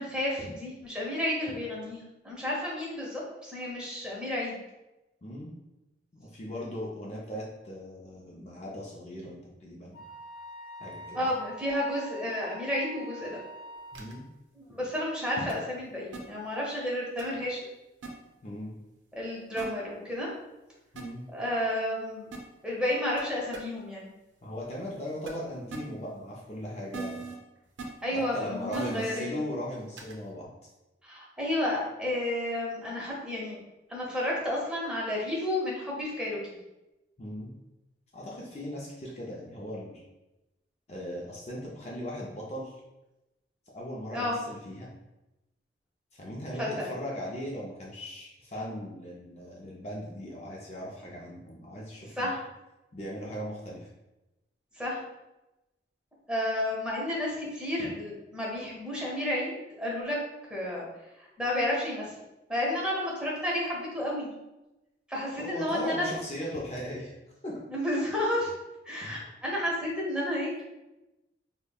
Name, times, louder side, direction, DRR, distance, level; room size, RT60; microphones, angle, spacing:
voice 1, 0.0-2.0 2.2-4.6 11.1-13.4 14.6-17.6 19.2-20.3 21.3-22.3 22.6-24.1 28.0-29.4 31.0-33.6 33.9-36.4 44.1-44.4 46.6-46.9 52.2-52.4 54.7-55.0 56.3-60.2 60.5-60.9 61.2-62.1 62.5-64.3 65.1-66.0 67.7-68.5 68.9-70.6, left 1 dB, 5° right, -5 dB, 0.7 m, -31 dB
voice 2, 5.2-5.5 6.1-10.0 10.8-11.2 13.9-14.3 18.4-18.7 20.9-21.3 24.4-27.2 28.1-30.5 37.2-37.5 38.1-40.0 40.9-42.8 43.7-44.9 46.1-52.3 52.9-53.9 65.4-67.1 67.4-67.6 69.0-69.2, equal, 35° left, -4 dB, 0.5 m, -38 dB
Wind instrument woodwind instrument, 9.9-14.1, equal, 60° left, 1.0 m, -45 dB
sound 1, 13.9-14.1 15.5-15.6 16.1-16.2 17.2-17.3 18.0-18.1 19.6-19.7 21.0-21.1 22.3-22.4 23.2-23.3 23.5-23.6 25.3-25.4 25.7-25.8 26.9-27.3 27.8-27.9 28.7-29.1 30.0-30.1, right 4 dB, 80° right, 0.6 m, -38 dB
5.0 x 2.1 x 2.2 m, 0.98 s
head